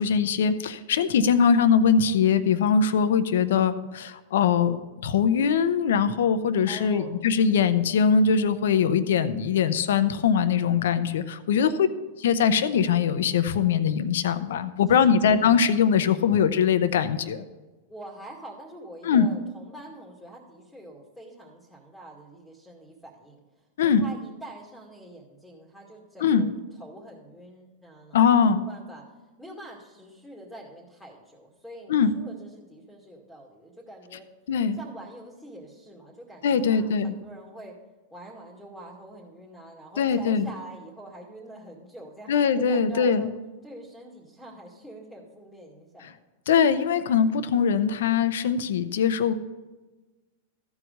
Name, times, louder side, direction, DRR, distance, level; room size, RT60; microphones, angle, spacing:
voice 1, 0.0-11.9 12.2-17.4 19.0-19.3 23.8-24.1 26.2-26.5 28.1-28.6 31.9-32.2 34.5-34.8 36.4-37.1 40.0-40.5 42.3-43.3 46.5-49.3, left 6 dB, 75° left, 12 dB, 0.8 m, -22 dB
voice 2, 6.7-7.7 11.5-11.9 14.9-15.4 17.9-26.5 26.8-29.1 29.4-34.3 34.7-37.8 38.1-43.3 43.6-46.2, right 1 dB, ahead, -4 dB, 2.1 m, -45 dB
14.0 x 4.8 x 6.6 m, 1.2 s
hypercardioid pair, 110°, 0 cm